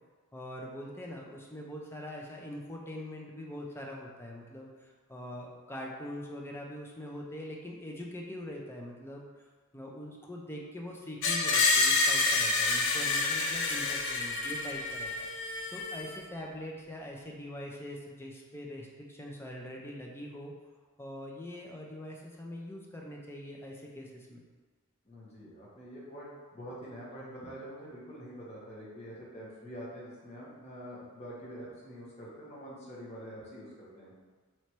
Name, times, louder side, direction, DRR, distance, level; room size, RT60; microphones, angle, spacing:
voice 1, 0.3-9.3 9.7-15.3 15.7-20.5 21.0-24.4, left 1 dB, 10° left, -1 dB, 0.5 m, -43 dB
Screech, 11.2-16.2, left 3 dB, 65° left, 0.5 m, -28 dB
voice 2, 25.0-34.1, equal, 30° left, -7 dB, 1.1 m, -45 dB
3.1 x 3.1 x 4.3 m, 1.4 s
head